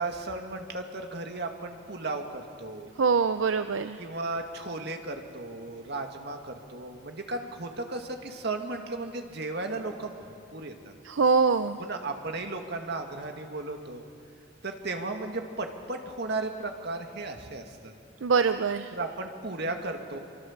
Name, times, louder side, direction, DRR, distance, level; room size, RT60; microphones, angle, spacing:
voice 1, 0.0-2.9 4.0-10.2 10.5-10.9 11.8-14.0 14.6-17.9 18.9-20.2, right 2 dB, 60° right, 4 dB, 2.1 m, -35 dB
voice 2, 3.0-4.0 11.1-11.8 18.2-18.9, right 5 dB, 80° right, 10 dB, 0.6 m, -23 dB
25.5 x 23.5 x 7.4 m, 2.4 s
head